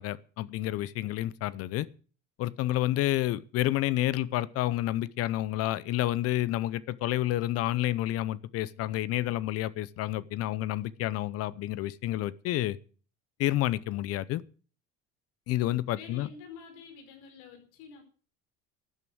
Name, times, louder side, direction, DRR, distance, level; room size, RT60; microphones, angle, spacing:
voice 1, 0.0-1.9 2.4-12.8 13.4-14.4 15.5-16.3, left 15 dB, 50° left, 0.7 m, -29 dB
voice 2, 15.9-18.0, left 5 dB, 75° left, 4.7 m, -48 dB
12.5 x 9.2 x 7.9 m
cardioid pair, 150°, 31 cm